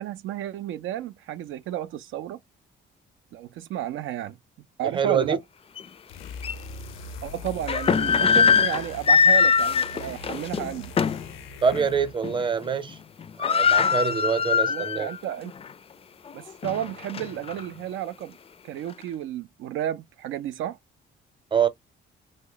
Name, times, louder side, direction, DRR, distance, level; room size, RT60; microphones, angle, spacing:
voice 1, 0.0-2.4 3.3-4.4 4.8-5.4 7.2-10.9 14.7-15.5 16.3-18.3 18.6-20.8, right 11 dB, 80° right, 0.4 m, -32 dB
voice 2, 4.9-5.4 11.6-13.0 13.4-15.1 21.5-21.7, right 6 dB, 25° right, 0.7 m, -25 dB
sound 1, 5.8-5.9 6.4-6.5 7.5-11.3 11.7-11.9 12.2-12.7 12.9-13.0 13.2-15.2 15.6-15.7 16.3-17.6, left 6 dB, 30° left, 0.3 m, -22 dB
sound 2, 6.1-12.2, left 3 dB, 90° left, 0.6 m, -41 dB
3.0 x 2.1 x 3.8 m
cardioid pair, 90°, 20 cm